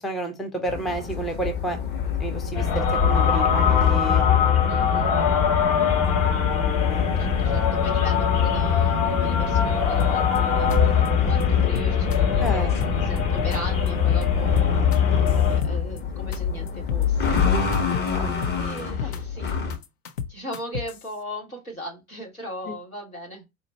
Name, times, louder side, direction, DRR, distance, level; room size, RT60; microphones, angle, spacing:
voice 1, 0.0-1.8 2.2-4.2 6.5-7.1 12.4-12.7 18.1-18.5 19.0-19.2 22.7-22.8, right 1 dB, ahead, 0.3 m, -31 dB
sound 1, 0.7-19.8, left 7 dB, 25° left, 0.9 m, -26 dB
sound 2, 2.5-15.6, left 7 dB, 45° left, 1.1 m, -22 dB
voice 2, 4.7-5.2 7.2-14.5 15.5-19.6 20.3-23.4, equal, 90° left, 1.6 m, -38 dB
sound 3, 10.0-10.4 10.7-10.8 11.1-11.4 11.8-12.5 12.8-13.6 13.9-14.2 14.6-16.0 16.3-16.4 16.7-17.0 17.4-18.1 18.4-19.2 19.5-21.0, left 7 dB, 65° left, 0.6 m, -32 dB
4.2 x 2.5 x 3.1 m
figure-of-eight pair, 80°, 41 cm